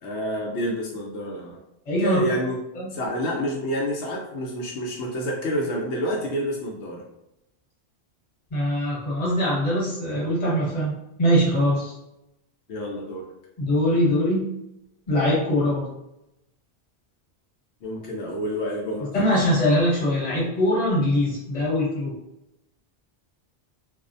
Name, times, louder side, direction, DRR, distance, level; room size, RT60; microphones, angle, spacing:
voice 1, 0.0-1.6 2.0-2.6 2.9-7.0 12.7-13.3 17.8-19.1, equal, 80° left, -2 dB, 0.9 m, -28 dB
voice 2, 1.9-2.2 2.7-2.9 8.5-10.9 11.2-11.9 13.6-14.5 15.1-15.9 19.1-22.1, equal, 40° left, -6 dB, 1.2 m, -22 dB
2.4 x 2.0 x 2.5 m, 0.85 s
omnidirectional pair, 1.1 m